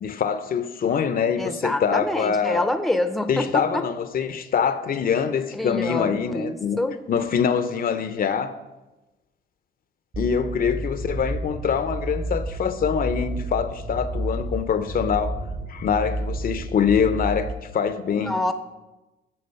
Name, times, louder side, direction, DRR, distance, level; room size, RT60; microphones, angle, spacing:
voice 1, 0.0-2.7 3.3-6.8 7.1-8.6 10.2-15.3 15.7-18.5, left 7 dB, 45° left, 0.5 m, -24 dB
voice 2, 1.4-3.9 5.5-7.0 18.2-18.5, left 1 dB, ahead, 0.5 m, -26 dB
sound 1, 10.1-17.5, right 1 dB, 40° right, 1.0 m, -31 dB
8.6 x 3.8 x 5.5 m
cardioid pair, 90°, 20 cm